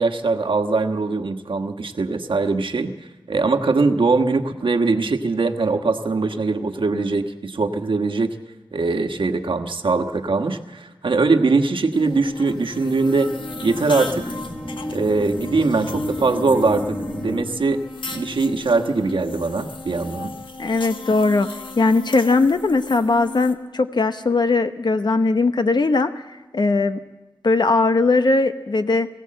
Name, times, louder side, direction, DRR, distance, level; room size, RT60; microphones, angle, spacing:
voice 1, 0.0-2.9 3.3-8.3 8.7-13.3 13.6-14.3 14.9-17.8 18.1-20.3, right 3 dB, 80° right, 6 dB, 1.3 m, -21 dB
sound 1, 11.9-23.5, left 3 dB, 75° left, 1.4 m, -36 dB
sound 2, 12.2-17.4, left 1 dB, 20° left, 4.2 m, -32 dB
voice 2, 20.6-21.5 21.8-26.1 26.5-27.0 27.4-29.1, left 3 dB, 60° left, 9 dB, 0.9 m, -19 dB
22.0 x 16.0 x 7.7 m, 1.1 s
wide cardioid pair, 85°, 9 cm